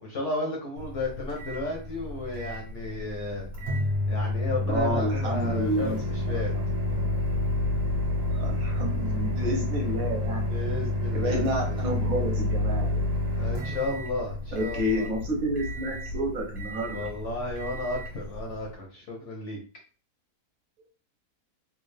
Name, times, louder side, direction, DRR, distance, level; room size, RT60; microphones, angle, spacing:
voice 1, 0.0-3.5 4.1-6.5 10.5-12.0 13.3-15.1 16.9-19.6, left 2 dB, 55° left, 0 dB, 0.9 m, -33 dB
Microwave oven, 0.8-18.7, left 2 dB, 40° right, 1.2 m, -30 dB
voice 2, 4.6-6.6 8.3-10.5 11.1-13.1 14.5-17.1, right 1 dB, 60° right, 1 dB, 1.1 m, -30 dB
3.4 x 2.4 x 3.2 m, 0.36 s
omnidirectional pair, 1.8 m